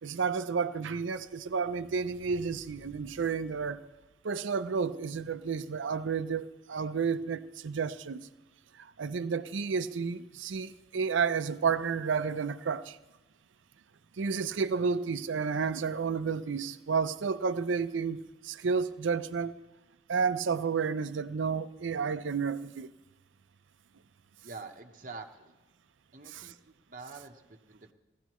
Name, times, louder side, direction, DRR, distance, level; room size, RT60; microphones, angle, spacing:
voice 1, 0.0-3.8 4.2-8.3 8.8-13.0 14.2-19.5 20.1-22.9 26.3-26.4, right 5 dB, 90° right, 0.5 m, -31 dB
voice 2, 24.4-25.6 26.1-27.9, right 3 dB, 45° right, 1.0 m, -46 dB
17.5 x 14.5 x 3.1 m
head